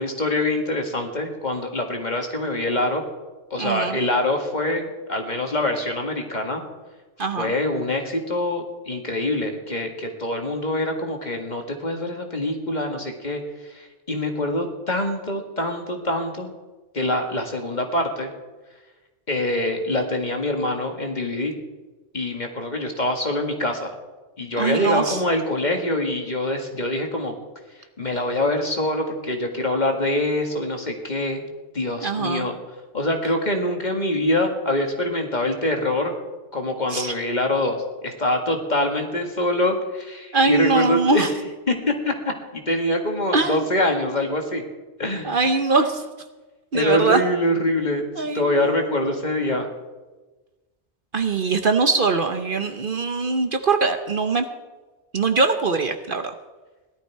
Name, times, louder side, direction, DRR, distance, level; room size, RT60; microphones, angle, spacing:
voice 1, 0.0-3.0 3.5-6.6 7.4-16.5 16.9-18.3 19.3-21.5 22.1-23.9 24.4-27.3 28.0-31.4 31.7-32.6 32.9-36.1 36.5-37.8 38.0-41.2 41.7-42.1 42.5-44.6 45.0-45.4 46.7-49.7, left 1 dB, 40° left, 3 dB, 1.9 m, -24 dB
voice 2, 3.6-4.0 7.2-7.5 24.6-25.2 32.0-32.5 36.9-37.1 40.3-41.3 43.3-43.6 45.2-46.0 46.7-47.2 48.2-48.9 51.1-54.5 55.1-56.3, right 4 dB, 50° right, 7 dB, 1.0 m, -22 dB
17.5 x 12.0 x 4.6 m, 1.2 s
omnidirectional pair, 1.2 m